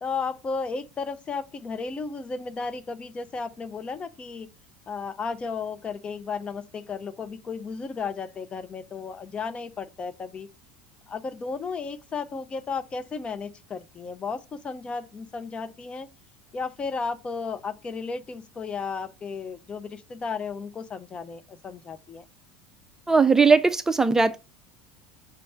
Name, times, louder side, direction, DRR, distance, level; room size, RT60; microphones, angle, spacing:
voice 1, 0.0-4.5 4.9-10.5 11.1-16.1 16.5-22.3, left 5 dB, 25° left, 0.7 m, -34 dB
voice 2, 23.1-24.4, right 4 dB, 15° right, 0.5 m, -19 dB
5.3 x 3.2 x 5.5 m
figure-of-eight pair, 75°, 4 cm